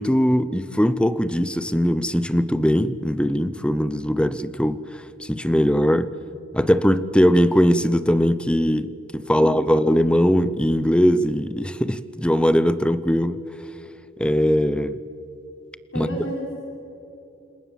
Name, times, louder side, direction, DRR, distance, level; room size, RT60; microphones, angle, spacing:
voice 1, 0.0-6.1 6.5-13.4 14.2-15.0 16.0-16.1, equal, 5° left, 0.7 m, -20 dB
voice 2, 9.3-9.9 15.9-16.5, right 1 dB, 85° left, 5.5 m, -32 dB
29.0 x 26.5 x 7.4 m
head